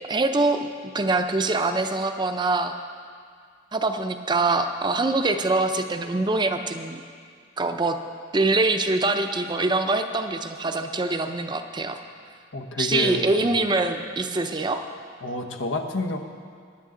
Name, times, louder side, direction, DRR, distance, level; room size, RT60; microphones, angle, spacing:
voice 1, 0.1-0.7 0.9-2.7 3.7-7.0 7.6-8.0 8.3-12.0 12.8-14.8, right 2 dB, 25° right, 7 dB, 0.6 m, -24 dB
voice 2, 12.5-13.5 15.2-16.2, left 3 dB, 90° left, 5 dB, 1.1 m, -29 dB
20.0 x 9.5 x 3.8 m, 2.1 s
head